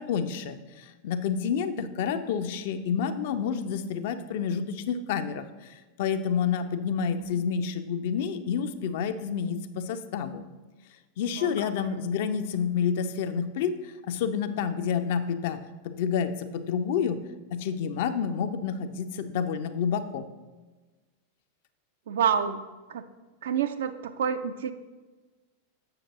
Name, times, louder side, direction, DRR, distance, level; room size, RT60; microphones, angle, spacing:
voice 1, 0.0-10.4 11.2-15.6 15.8-17.2 17.5-20.2, left 7 dB, 50° left, 9 dB, 0.4 m, -29 dB
voice 2, 11.4-11.7 22.1-22.6 22.9-23.1 23.4-24.7, right 7 dB, 60° right, 10 dB, 0.4 m, -28 dB
7.7 x 6.4 x 3.0 m, 1.3 s
figure-of-eight pair, 90°, 0 cm